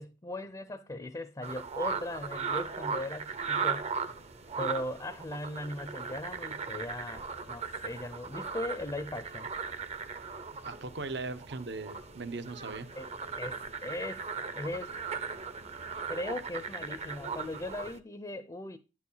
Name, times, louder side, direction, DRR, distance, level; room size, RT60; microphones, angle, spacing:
voice 1, 0.0-3.9 4.6-9.5 13.0-13.1 13.4-14.3 14.6-14.9 16.1-18.8, left 1 dB, 20° left, 0.6 m, -38 dB
sound 1, 1.4-18.0, right 5 dB, 35° right, 0.7 m, -38 dB
voice 2, 10.6-12.9, right 3 dB, 65° right, 0.9 m, -39 dB
10.5 x 4.8 x 5.5 m
head